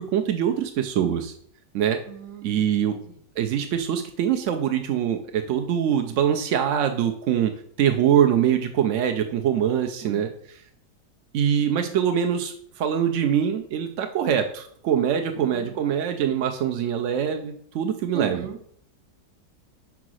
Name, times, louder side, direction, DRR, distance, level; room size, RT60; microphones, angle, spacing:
voice 1, 0.0-1.3 1.7-2.0 2.4-3.0 3.4-7.5 7.8-10.6 11.3-18.4, right 9 dB, 70° right, 6 dB, 0.7 m, -23 dB
voice 2, 2.1-3.2 10.0-10.3 11.9-12.0 15.3-15.8 18.1-18.6, right 9 dB, 50° right, 5 dB, 1.0 m, -38 dB
4.9 x 4.7 x 6.2 m, 0.64 s
omnidirectional pair, 1.9 m